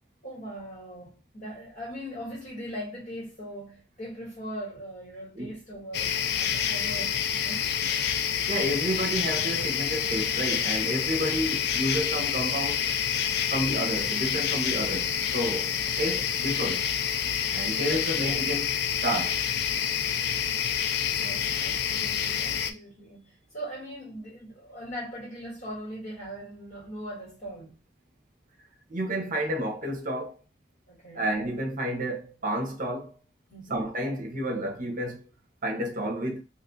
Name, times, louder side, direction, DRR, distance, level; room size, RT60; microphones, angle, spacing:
voice 1, 0.2-7.6 17.9-18.1 21.2-27.8 30.9-31.3 33.5-33.9, equal, 45° left, 2.1 m, -40 dB
sound 1, 5.9-22.7, left 8 dB, 60° left, 0.3 m, -28 dB
voice 2, 8.5-12.9 13.5-15.7 16.0-16.9 17.5-18.7 19.0-19.4 28.9-30.3 31.1-33.1 33.7-35.2 35.6-36.4, equal, 45° right, 0.8 m, -30 dB
3.3 x 2.9 x 2.6 m
head